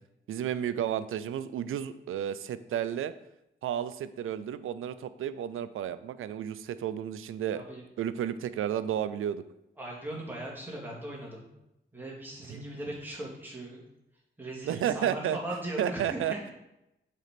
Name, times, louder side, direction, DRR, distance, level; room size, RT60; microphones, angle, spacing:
voice 1, 0.3-3.1 3.6-7.6 8.0-9.4 12.5-12.6 14.6-15.4 15.8-16.5, right 10 dB, 90° right, 14 dB, 0.4 m, -32 dB
voice 2, 7.5-7.8 9.8-11.4 11.9-13.8 14.4-16.5, right 1 dB, 10° right, -3 dB, 2.3 m, -39 dB
6.5 x 4.3 x 5.2 m, 0.89 s
cardioid pair, 80°, 21 cm